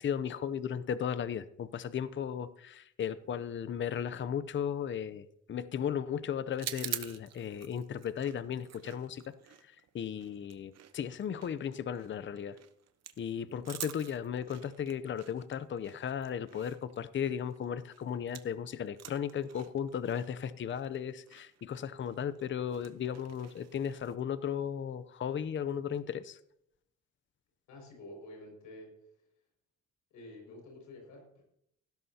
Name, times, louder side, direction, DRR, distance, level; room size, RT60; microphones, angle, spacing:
voice 1, 0.0-9.2 9.6-12.6 13.2-26.4, left 8 dB, 40° left, 15 dB, 0.6 m, -36 dB
sound 1, 6.5-18.6 18.9-24.2, right 10 dB, 60° right, 1.0 m, -47 dB
voice 2, 27.7-28.9 30.1-31.4, left 1 dB, 85° left, 1 dB, 5.8 m, -49 dB
16.5 x 12.5 x 2.8 m, 0.77 s
cardioid pair, 90°, 30 cm